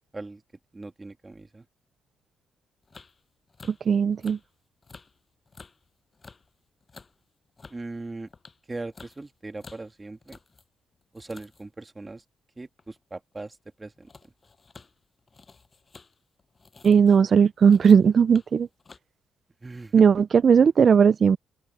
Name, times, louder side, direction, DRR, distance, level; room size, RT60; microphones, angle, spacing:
voice 1, 0.7-1.6 7.7-8.3 8.7-10.4 11.1-12.2 12.6-14.1 19.6-20.0, right 2 dB, 20° right, 2.1 m, -39 dB
sound 1, 2.8-3.2 3.5-4.5 4.8-5.2 5.5-5.9 6.1-6.5 6.8-7.2 7.6-7.9 8.3-10.6 11.0-11.8 12.8-13.0 13.4-13.5 13.7-18.1 18.3-18.5 18.8-19.0, left 4 dB, 30° left, 7.1 m, -51 dB
voice 2, 3.9-4.4 16.8-18.7 19.9-21.4, right 6 dB, 45° right, 0.4 m, -17 dB
open air
cardioid pair, 90°, 0 cm